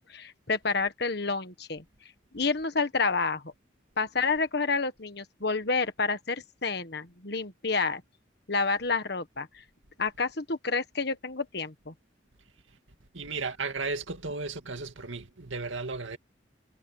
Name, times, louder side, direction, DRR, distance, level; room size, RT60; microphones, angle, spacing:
voice 1, 0.0-1.8 2.3-3.5 4.0-8.0 8.5-9.6 10.0-11.9, left 4 dB, 55° left, 1.6 m, -29 dB
voice 2, 13.1-16.2, right 3 dB, 80° right, 2.3 m, -34 dB
head